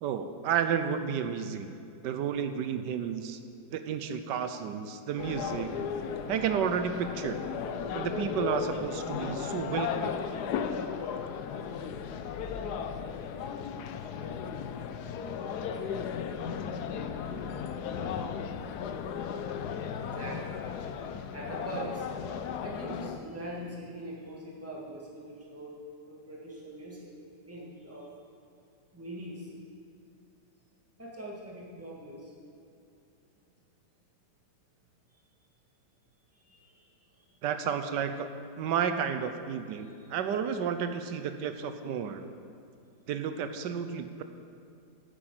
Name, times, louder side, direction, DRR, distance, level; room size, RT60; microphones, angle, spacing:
voice 1, 0.0-1.7 2.0-3.4 3.7-5.7 6.3-7.4 7.9-10.2 37.4-38.3 38.6-42.2 43.1-44.2, right 7 dB, 85° right, 9 dB, 1.3 m, -31 dB
sound 1, 5.2-23.2, left 7 dB, 70° left, 1.2 m, -35 dB
voice 2, 19.8-20.8 21.3-22.1 22.6-25.8 26.0-27.1 27.5-28.1 28.9-29.5 31.0-32.3 36.3-37.3 39.7-40.1, right 1 dB, 10° right, -5 dB, 2.1 m, -42 dB
9.7 x 8.5 x 7.8 m, 2.5 s
omnidirectional pair, 1.9 m